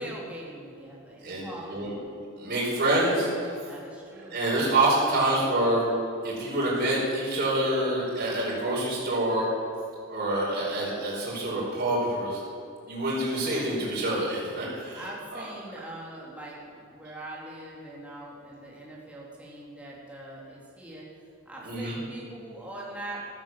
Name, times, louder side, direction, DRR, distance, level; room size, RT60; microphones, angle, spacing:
voice 1, 0.0-2.1 3.6-4.4 15.0-21.1 21.5-23.3, right 1 dB, 5° right, -5 dB, 3.4 m, -42 dB
voice 2, 1.2-1.9 2.4-3.3 4.3-5.9 6.2-9.5 10.1-12.4 12.9-15.0 15.3-15.4 21.6-21.9, right 1 dB, 45° right, -7 dB, 4.9 m, -26 dB
14.0 x 13.0 x 7.6 m, 2.5 s
head